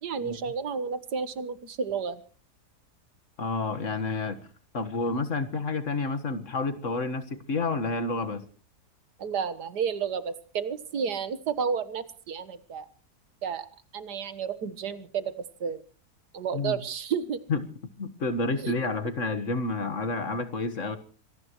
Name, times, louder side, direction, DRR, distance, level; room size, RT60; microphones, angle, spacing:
voice 1, 0.0-2.2 9.2-12.9 13.4-13.7 13.9-15.3 15.6-15.8 16.3-17.4 18.6-18.7, right 6 dB, 85° right, 13 dB, 1.9 m, -31 dB
voice 2, 3.4-4.4 4.7-8.4 16.5-16.8 17.5-17.6 18.0-21.0, left 3 dB, 50° left, 10 dB, 1.8 m, -29 dB
26.0 x 18.0 x 3.1 m, 0.39 s
omnidirectional pair, 1.7 m